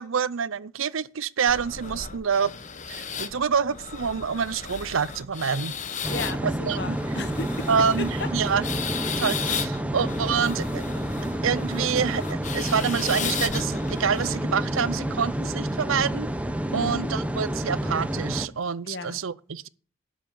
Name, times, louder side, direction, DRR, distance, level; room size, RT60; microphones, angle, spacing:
voice 1, 0.0-2.5 2.9-5.7 6.4-7.0 7.7-8.7 9.2-10.8 11.4-16.3 16.7-19.7, right 6 dB, 75° right, 0.6 m, -27 dB
sound 1, 1.5-14.4, left 7 dB, 35° left, 1.1 m, -35 dB
sound 2, 6.0-18.5, right 1 dB, 5° right, 0.8 m, -29 dB
voice 2, 6.1-7.7 8.0-8.1 8.4-8.6 16.7-17.1 18.8-19.2, left 2 dB, 55° left, 1.6 m, -34 dB
12.5 x 6.2 x 8.6 m
head